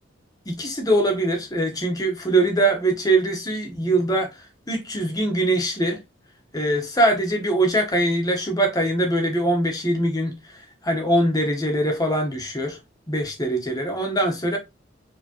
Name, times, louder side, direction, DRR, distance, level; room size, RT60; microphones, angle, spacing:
voice 1, 0.4-6.0 6.5-12.8 13.1-14.6, right 1 dB, 20° left, 1.2 m, -22 dB
4.7 x 3.2 x 3.0 m
head